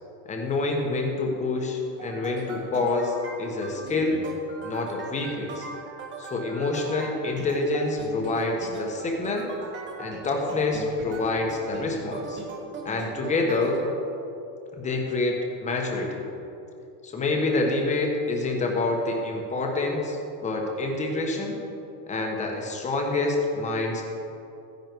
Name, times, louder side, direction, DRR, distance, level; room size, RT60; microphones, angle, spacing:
voice 1, 0.3-4.2 4.6-5.7 6.2-9.5 10.0-12.4 12.8-13.8 14.8-16.3 17.0-21.6 22.1-24.0, left 2 dB, 15° left, 1 dB, 1.3 m, -27 dB
sound 1, 1.9-13.8, right 3 dB, 25° right, 1.5 m, -39 dB
14.0 x 10.5 x 4.7 m, 2.8 s
supercardioid pair, 165°, 47 cm